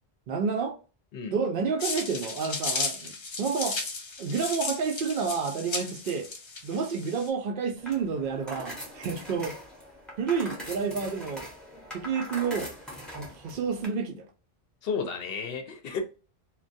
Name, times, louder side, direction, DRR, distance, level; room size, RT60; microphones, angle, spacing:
voice 1, 0.3-0.8 1.3-3.8 4.2-6.3 6.6-9.6 10.2-11.5 11.9-12.7 13.1-14.3, right 5 dB, 60° right, 0.7 m, -30 dB
sound 1, 1.8-7.3, left 3 dB, 45° left, 0.3 m, -34 dB
sound 2, 7.8-13.9, equal, ahead, 0.6 m, -42 dB
voice 2, 14.8-16.0, left 5 dB, 65° left, 0.7 m, -32 dB
2.2 x 2.2 x 2.5 m
omnidirectional pair, 1.1 m